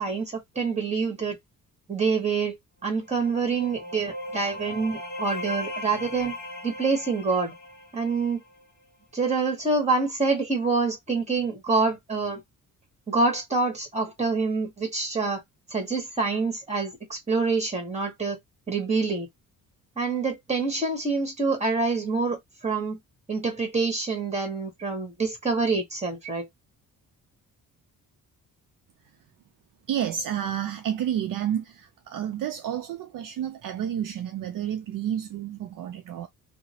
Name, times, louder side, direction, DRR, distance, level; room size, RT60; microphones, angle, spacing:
voice 1, 0.0-1.4 1.9-2.6 2.8-6.4 6.6-7.5 7.9-8.4 9.1-12.4 13.1-15.4 15.7-18.4 18.7-19.3 20.0-23.0 23.3-26.5, right 4 dB, 20° right, 1.4 m, -26 dB
sound 1, 3.0-8.6, left 1 dB, 25° left, 1.4 m, -38 dB
voice 2, 29.9-36.3, right 10 dB, 65° right, 0.5 m, -30 dB
2.8 x 2.0 x 2.8 m
cardioid pair, 100°, 36 cm